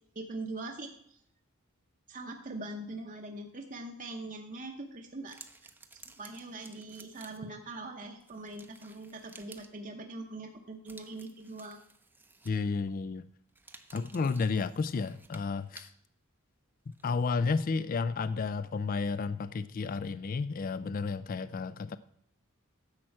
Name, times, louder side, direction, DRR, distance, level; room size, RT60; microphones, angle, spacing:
voice 1, 0.1-1.2 2.1-5.4 6.2-11.8, right 2 dB, 35° right, 3 dB, 0.8 m, -42 dB
sound 1, 5.3-7.6 8.2-9.8 10.9-12.8 13.5-16.0 16.9-17.2, right 3 dB, 10° right, 0.6 m, -55 dB
voice 2, 12.4-13.2 13.9-15.9 16.9-22.0, left 4 dB, 40° left, 15 dB, 0.3 m, -32 dB
10.5 x 7.5 x 4.6 m, 0.70 s
head